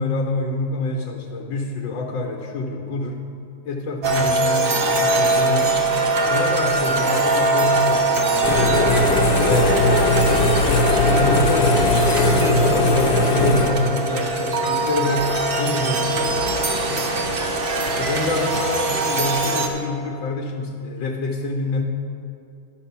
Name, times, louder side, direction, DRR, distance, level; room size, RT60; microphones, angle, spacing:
voice 1, 0.0-3.2 3.6-5.8 6.3-10.5 11.1-17.1 18.0-21.8, left 2 dB, 85° left, 0 dB, 1.6 m, -27 dB
sound 1, 4.0-19.7, right 2 dB, 60° right, 0.5 m, -22 dB
sound 2, 8.4-13.7, left 2 dB, 60° left, 1.3 m, -19 dB
11.0 x 6.6 x 5.7 m, 2.7 s
omnidirectional pair, 2.0 m